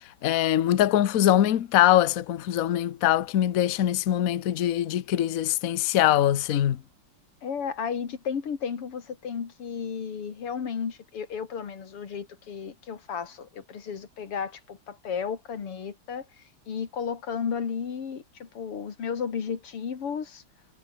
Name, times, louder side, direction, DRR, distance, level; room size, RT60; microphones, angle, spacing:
voice 1, 0.0-6.8, left 12 dB, 50° left, 1.1 m, -23 dB
voice 2, 7.4-16.3 16.7-20.4, left 6 dB, 90° left, 3.4 m, -33 dB
omnidirectional pair, 2.4 m